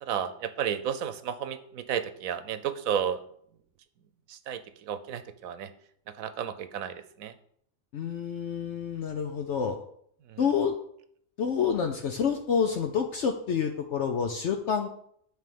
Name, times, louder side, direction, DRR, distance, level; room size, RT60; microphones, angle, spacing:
voice 1, 0.0-3.2 4.3-5.7 6.1-7.3 10.3-10.5, right 9 dB, 80° right, 12 dB, 1.1 m, -33 dB
voice 2, 7.9-9.8 10.4-10.7 11.4-14.9, left 6 dB, 60° left, 5 dB, 0.9 m, -28 dB
9.3 x 3.5 x 6.9 m, 0.66 s
omnidirectional pair, 1.4 m